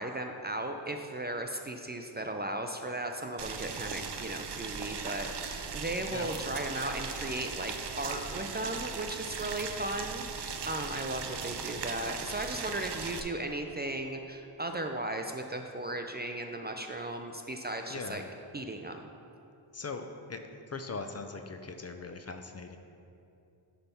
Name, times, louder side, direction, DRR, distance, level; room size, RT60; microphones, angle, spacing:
voice 1, 0.0-18.2 18.5-19.1, right 1 dB, 25° right, 4 dB, 0.4 m, -36 dB
Boiling, 3.4-13.2, right 6 dB, 60° right, 0.7 m, -38 dB
voice 2, 17.9-18.2 19.7-20.4 20.7-22.8, left 4 dB, 35° left, 6 dB, 0.5 m, -40 dB
10.0 x 3.4 x 5.6 m, 2.7 s
wide cardioid pair, 80°, 45 cm